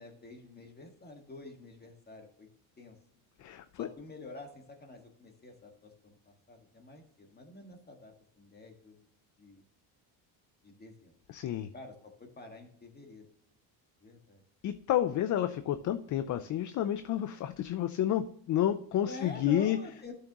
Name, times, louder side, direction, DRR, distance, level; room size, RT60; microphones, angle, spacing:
voice 1, 0.0-2.5 2.8-3.0 3.8-9.0 9.4-9.6 10.6-11.1 11.7-13.2 14.0-14.4 19.0-20.1, left 3 dB, 20° left, 3 dB, 1.7 m, -48 dB
voice 2, 3.4-3.9 11.3-11.7 14.6-19.8, left 11 dB, 40° left, 11 dB, 0.5 m, -30 dB
12.5 x 6.4 x 3.0 m, 0.69 s
cardioid pair, 140°, 47 cm